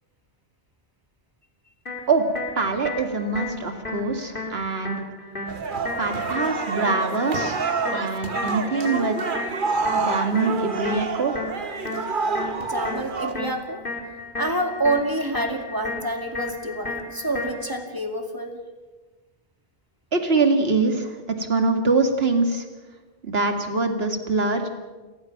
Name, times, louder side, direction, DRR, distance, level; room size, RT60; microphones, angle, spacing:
sound 1, 1.9-17.9, left 3 dB, 55° left, 3.3 m, -35 dB
voice 1, 2.6-5.0 6.0-7.6 7.9-9.2 9.9-11.3 20.1-22.7 23.2-24.7, right 3 dB, 70° right, 5 dB, 2.4 m, -24 dB
sound 2, 5.5-13.3, right 4 dB, 55° right, 1.4 m, -28 dB
voice 2, 12.6-13.8 14.3-18.6, right 1 dB, 20° right, 4 dB, 2.4 m, -27 dB
29.5 x 15.0 x 6.0 m, 1.3 s
omnidirectional pair, 1.1 m